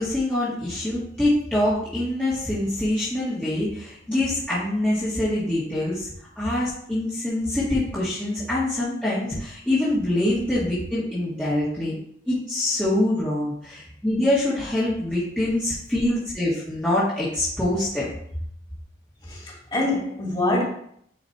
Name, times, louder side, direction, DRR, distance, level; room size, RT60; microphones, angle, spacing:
voice 1, 0.0-6.1 6.4-11.9 12.3-18.1, left 1 dB, 5° left, -10 dB, 1.8 m, -25 dB
voice 2, 19.2-20.6, left 2 dB, 25° left, -5 dB, 2.8 m, -25 dB
10.0 x 4.7 x 2.9 m, 0.68 s
head